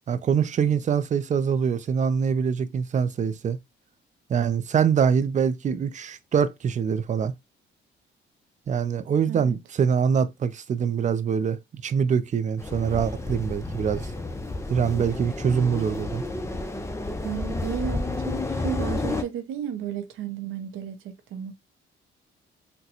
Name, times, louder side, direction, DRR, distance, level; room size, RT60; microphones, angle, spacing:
voice 1, 0.1-3.6 4.3-7.3 8.7-14.1 14.7-16.2, right 7 dB, 40° right, 0.4 m, -24 dB
sound 1, 12.6-19.2, left 2 dB, 15° left, 0.6 m, -31 dB
voice 2, 17.2-21.6, right 9 dB, 85° right, 0.6 m, -33 dB
4.0 x 2.2 x 2.8 m
cardioid pair, 90°, 20 cm